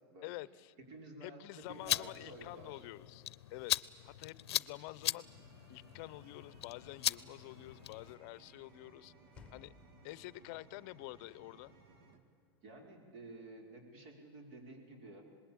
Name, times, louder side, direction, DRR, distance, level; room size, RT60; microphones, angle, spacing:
voice 1, 0.2-0.7 1.2-3.2 3.5-3.7 4.0-5.3 5.7-9.1 9.5-9.7 10.0-11.7, left 19 dB, 50° left, 20 dB, 0.7 m, -48 dB
voice 2, 0.9-2.9 12.6-15.2, right 2 dB, 50° right, 2 dB, 5.4 m, -52 dB
sound 1, 1.6-8.1, left 13 dB, 85° left, 0.6 m, -39 dB
sound 2, 4.0-12.2, right 3 dB, 70° right, 2.5 m, -62 dB
Sliding door / Slam, 5.9-12.9, left 5 dB, 10° left, 1.9 m, -66 dB
26.5 x 20.0 x 8.7 m, 2.4 s
supercardioid pair, 145°, 13 cm